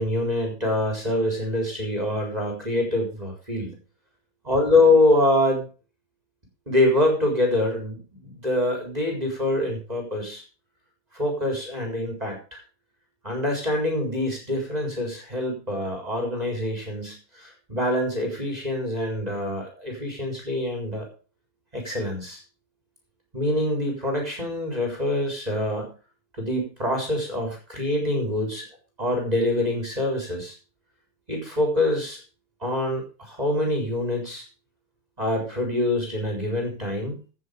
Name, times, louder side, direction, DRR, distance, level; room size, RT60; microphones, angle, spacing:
voice 1, 0.0-3.7 4.4-5.7 6.7-10.4 11.1-12.6 13.2-21.1 21.7-22.4 23.3-25.9 26.4-28.6 29.0-30.5 31.3-32.2 32.6-34.4 35.2-37.2, left 1 dB, 15° right, 0 dB, 4.1 m, -25 dB
16.5 x 7.2 x 5.1 m, 0.36 s
omnidirectional pair, 2.4 m